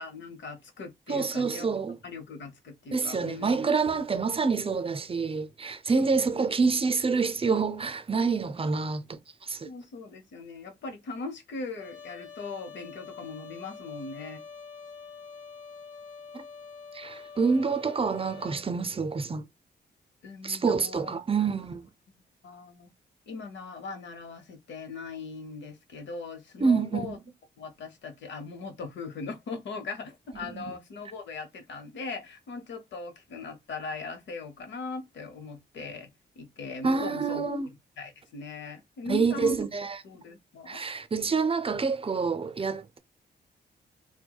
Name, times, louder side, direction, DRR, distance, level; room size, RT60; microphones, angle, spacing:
voice 1, 0.0-1.7 2.0-3.7 5.9-6.4 9.6-14.4 20.2-21.5 22.4-22.9 23.3-27.2 27.6-37.4 38.0-39.6 40.0-40.8, left 4 dB, 85° left, 0.9 m, -40 dB
voice 2, 1.1-2.0 2.9-9.7 16.3-16.4 16.9-19.4 20.4-21.9 26.6-27.2 30.4-30.8 36.8-37.7 39.1-40.0 40.7-43.0, right 4 dB, 30° right, 0.5 m, -27 dB
Trumpet, 11.8-18.6, left 5 dB, 45° left, 1.8 m, -46 dB
4.6 x 2.1 x 2.3 m
cardioid pair, 95°, 18 cm